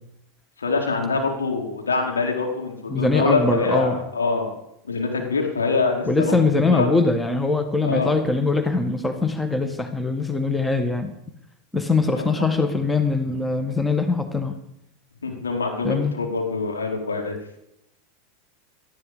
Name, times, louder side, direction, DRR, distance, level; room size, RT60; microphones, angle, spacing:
voice 1, 0.6-4.5 4.8-6.3 6.6-6.9 7.8-8.2 12.1-12.3 15.2-17.4, left 4 dB, 80° left, 1 dB, 4.4 m, -24 dB
voice 2, 2.9-4.0 6.0-11.1 11.7-14.6 15.8-16.1, left 3 dB, 10° left, 8 dB, 1.8 m, -22 dB
19.0 x 13.5 x 5.2 m, 0.80 s
figure-of-eight pair, 85°, 0 cm